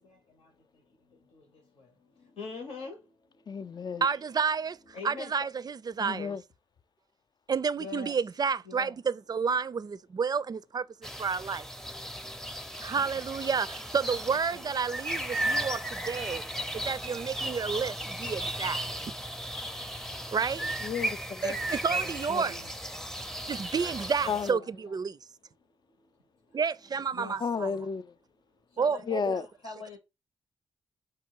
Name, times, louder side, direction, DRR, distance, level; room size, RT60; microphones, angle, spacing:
voice 1, 2.4-3.0 4.1-4.2 4.9-5.3 7.8-8.2 8.6-9.0 12.9-13.6 14.3-14.8 20.5-20.9 22.3-22.7 24.2-24.9 26.9-27.8 28.8-30.0, left 4 dB, 75° left, 0.9 m, -44 dB
voice 2, 3.5-4.0 6.0-6.4 20.8-21.6 22.3-22.4 24.3-24.6 27.4-28.1 29.1-29.4, left 5 dB, 45° left, 0.4 m, -32 dB
voice 3, 4.0-4.8 5.0-6.4 7.5-10.9 11.2-11.7 12.8-16.5 16.7-18.8 20.3-20.6 21.4-22.5 23.5-25.2 26.5-27.7 28.8-29.3, right 6 dB, 40° right, 0.4 m, -30 dB
sound 1, 11.0-24.5, right 1 dB, 5° left, 0.6 m, -35 dB
4.2 x 2.2 x 4.6 m
supercardioid pair, 40°, 10 cm